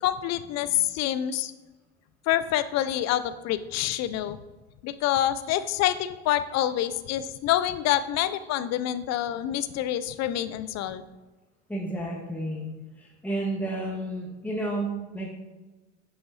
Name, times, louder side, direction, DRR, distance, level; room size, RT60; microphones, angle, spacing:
voice 1, 0.0-1.5 2.3-4.4 4.8-11.1, left 12 dB, 45° left, 14 dB, 0.7 m, -27 dB
voice 2, 11.7-12.7 13.0-15.3, right 1 dB, 5° left, -3 dB, 1.7 m, -31 dB
10.0 x 5.7 x 4.2 m, 1.2 s
hypercardioid pair, 85°, 36 cm